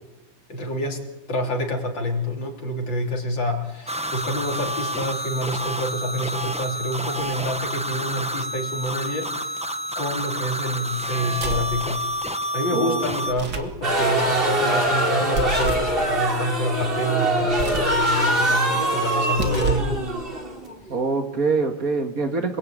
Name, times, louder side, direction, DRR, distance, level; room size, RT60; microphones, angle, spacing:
voice 1, 0.5-1.0 1.3-9.6 10.0-12.0 12.5-20.0, equal, 70° left, 2 dB, 4.1 m, -27 dB
sound 1, 3.9-13.3, equal, 5° right, 0.4 m, -29 dB
sound 2, 11.3-11.8 13.2-13.8 15.3-15.9 17.5-18.0 19.2-20.0, right 4 dB, 60° right, 2.6 m, -28 dB
voice 2, 12.7-13.0 20.9-22.6, right 4 dB, 45° right, 5 dB, 2.3 m, -24 dB
sound 3, 13.8-21.0, right 1 dB, 30° right, 3.2 m, -23 dB
27.5 x 21.5 x 8.7 m, 1.1 s
omnidirectional pair, 2.1 m